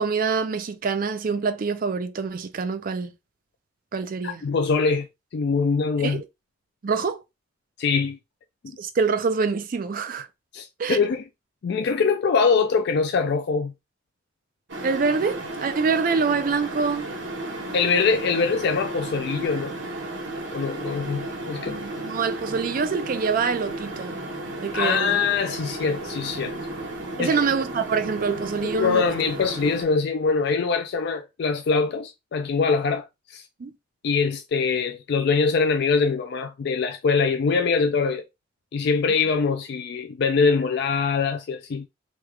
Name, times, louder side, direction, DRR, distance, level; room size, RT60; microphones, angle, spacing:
voice 1, 0.0-3.1 3.9-4.4 6.0-6.2 6.8-7.2 8.8-10.3 10.8-11.0 14.8-17.1 21.6-24.2 24.6-25.2 27.2-29.0 33.6-33.7, right 5 dB, 45° right, 0.4 m, -25 dB
voice 2, 4.2-5.1 5.3-6.2 7.8-8.2 8.6-8.8 10.5-11.2 11.6-13.7 17.7-19.7 20.5-21.8 24.7-26.6 27.2-27.3 28.7-33.5 34.0-38.2 38.7-41.9, left 5 dB, 60° left, 0.4 m, -23 dB
sound 1, 14.7-29.8, right 2 dB, 70° right, 1.1 m, -34 dB
3.1 x 2.3 x 3.2 m
head